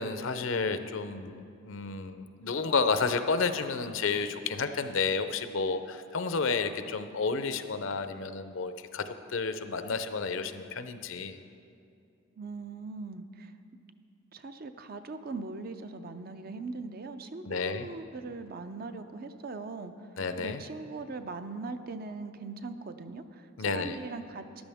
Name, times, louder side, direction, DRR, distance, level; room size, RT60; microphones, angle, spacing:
voice 1, 0.0-11.4 17.5-17.9 20.2-20.6 23.6-24.0, left 4 dB, 65° left, 9 dB, 0.6 m, -31 dB
voice 2, 12.4-13.5 14.3-19.9 20.4-24.6, right 3 dB, 45° right, 9 dB, 0.5 m, -40 dB
14.0 x 11.0 x 3.5 m, 2.6 s
head